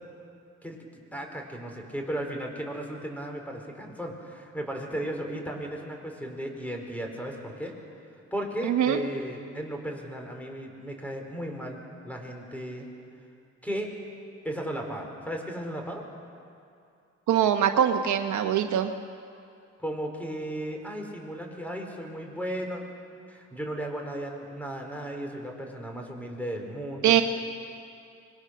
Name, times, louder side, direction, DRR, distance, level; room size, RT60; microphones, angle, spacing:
voice 1, 1.1-7.7 8.3-12.9 13.6-13.9 14.4-16.0 19.8-22.8 23.3-27.2, right 1 dB, 5° left, 2 dB, 4.5 m, -35 dB
voice 2, 8.6-9.0 17.3-18.9 27.0-27.2, right 10 dB, 70° right, 7 dB, 1.1 m, -22 dB
25.5 x 21.5 x 6.6 m, 2.5 s
cardioid pair, 90°, 30 cm